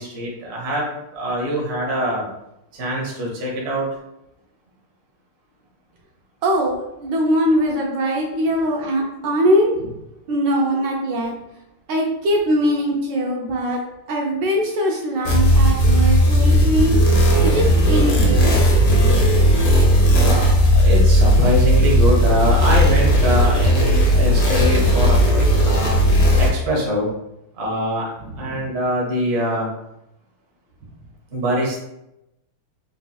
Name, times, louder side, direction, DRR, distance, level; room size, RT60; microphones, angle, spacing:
voice 1, 0.0-2.2 2.7-3.9 20.2-26.0 26.4-27.1 27.6-28.1 28.4-29.7 31.3-31.8, equal, 55° right, -3 dB, 0.6 m, -23 dB
voice 2, 6.4-10.0 10.3-11.3 11.9-13.8 14.1-17.0 17.4-18.6 28.2-28.6, equal, 75° right, -1 dB, 1.0 m, -21 dB
sound 1, 15.3-26.5, equal, 70° left, 1.4 m, -15 dB
4.0 x 2.7 x 2.3 m, 0.87 s
omnidirectional pair, 2.3 m